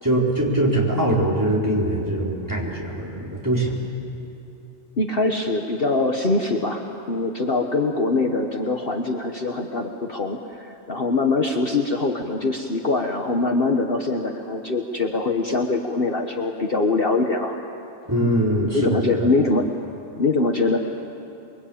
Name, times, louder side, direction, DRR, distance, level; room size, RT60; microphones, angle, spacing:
voice 1, 0.0-3.8 18.1-19.3, right 1 dB, 15° right, -4 dB, 4.5 m, -22 dB
voice 2, 5.0-17.5 18.6-19.7 20.2-20.8, left 3 dB, 45° left, 3 dB, 1.5 m, -23 dB
28.5 x 23.0 x 8.7 m, 3.0 s
omnidirectional pair, 1.4 m